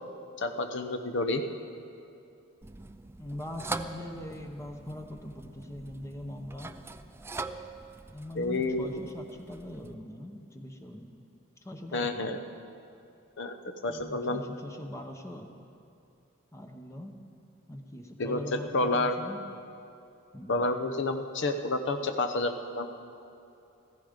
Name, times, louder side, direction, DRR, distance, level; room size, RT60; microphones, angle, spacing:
voice 1, 0.4-1.4 8.4-8.9 11.9-12.4 13.4-13.5 13.8-14.4 18.2-18.4 18.7-19.2 20.5-22.9, left 2 dB, 60° left, 7 dB, 0.8 m, -29 dB
sound 1, 2.6-9.9, right 3 dB, 10° right, 0.3 m, -43 dB
voice 2, 3.2-6.7 8.1-11.1 11.6-12.4 13.9-15.5 16.5-17.2 17.7-19.4 20.3-20.7, left 1 dB, 15° left, 3 dB, 0.8 m, -41 dB
15.5 x 15.0 x 5.1 m, 2.7 s
head